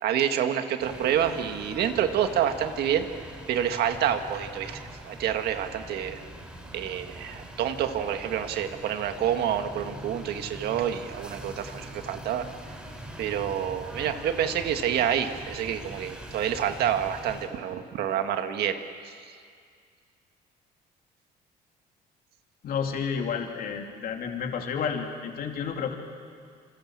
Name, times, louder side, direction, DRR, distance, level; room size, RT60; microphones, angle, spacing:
voice 1, 0.0-3.0 3.5-6.2 6.7-12.5 13.2-19.1, right 9 dB, 70° right, 7 dB, 1.9 m, -28 dB
sound 1, 0.8-17.5, right 1 dB, 5° right, 6.4 m, -43 dB
voice 2, 22.6-26.0, left 6 dB, 60° left, 2 dB, 3.2 m, -31 dB
27.5 x 25.5 x 7.6 m, 2.2 s
cardioid pair, 110°, 17 cm